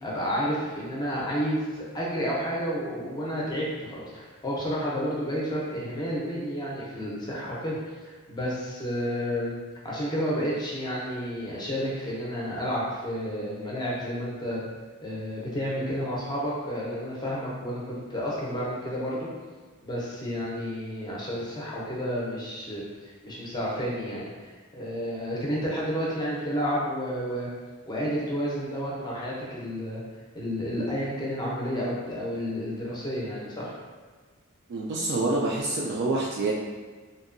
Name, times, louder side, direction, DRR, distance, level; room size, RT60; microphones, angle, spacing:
voice 1, 0.0-9.6 9.8-14.6 15.0-19.3 19.8-22.8 23.2-27.5 27.9-30.0 30.3-33.8, equal, 20° left, -5 dB, 0.6 m, -31 dB
voice 2, 34.7-36.5, right 2 dB, 50° right, -3 dB, 0.3 m, -27 dB
2.7 x 2.2 x 2.5 m, 1.5 s
head